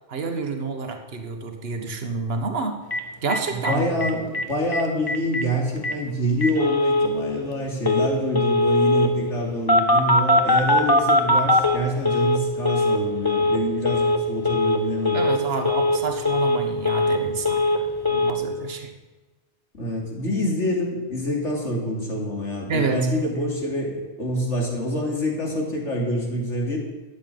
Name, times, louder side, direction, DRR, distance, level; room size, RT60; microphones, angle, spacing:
voice 1, 0.1-2.8 3.2-3.8 15.1-18.9 22.7-23.0, right 4 dB, 60° right, 5 dB, 1.6 m, -28 dB
Telephone, 2.9-3.0 3.3-3.4 3.6-3.7 4.0-4.4 4.7-4.8 5.1-5.4 5.8-5.9 6.4-7.1 7.8-8.1 8.3-9.1 9.7-12.4 12.6-13.0 13.2-13.6 13.8-14.2 14.4-14.8 15.0-15.4 15.6-16.0 16.2-17.2 17.4-17.8 18.0-18.3, left 2 dB, 20° left, 1.2 m, -20 dB
voice 2, 3.5-15.2 19.7-26.8, equal, 85° left, -1 dB, 3.5 m, -26 dB
13.5 x 8.2 x 9.3 m, 1.2 s
omnidirectional pair, 1.2 m